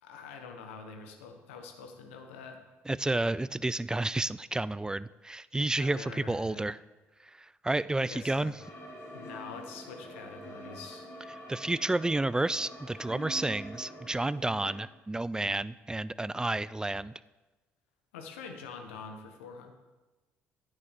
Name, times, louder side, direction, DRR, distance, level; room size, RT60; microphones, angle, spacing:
voice 1, 0.0-2.6 5.8-6.7 8.0-8.6 9.1-11.1 18.1-19.7, left 5 dB, 80° left, 5 dB, 1.2 m, -45 dB
voice 2, 2.9-6.8 7.6-8.5 11.5-17.1, right 2 dB, 10° right, 18 dB, 0.3 m, -30 dB
sound 1, 8.6-14.8, equal, 45° left, 3.3 m, -46 dB
11.0 x 9.6 x 3.6 m, 1.2 s
hypercardioid pair, 50°, 7 cm